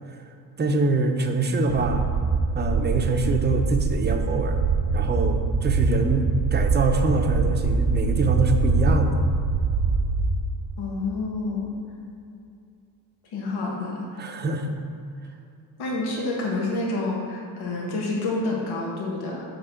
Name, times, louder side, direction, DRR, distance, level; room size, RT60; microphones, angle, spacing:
voice 1, 0.6-2.1 2.5-4.6 4.9-9.2 14.2-14.7, right 3 dB, 25° right, 4 dB, 0.8 m, -24 dB
sound 1, 1.7-10.3, right 4 dB, 65° right, 0.9 m, -23 dB
voice 2, 10.8-11.8 13.3-14.2 15.8-19.4, left 2 dB, 75° left, -2 dB, 1.6 m, -28 dB
5.5 x 5.5 x 6.8 m, 2.6 s
cardioid pair, 110°, 39 cm